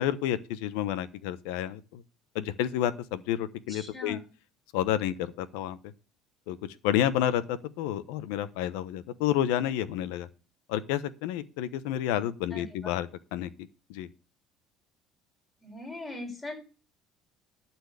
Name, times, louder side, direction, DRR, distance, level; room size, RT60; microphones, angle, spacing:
voice 1, 0.0-2.0 2.3-4.2 4.7-5.8 6.5-6.6 6.8-10.3 10.7-13.5 13.9-14.1, left 11 dB, 90° left, 0.9 m, -30 dB
voice 2, 3.7-4.2 12.5-12.9 15.6-16.5, left 2 dB, 20° left, 5.0 m, -40 dB
12.0 x 4.4 x 8.1 m
cardioid pair, 125°, 0 cm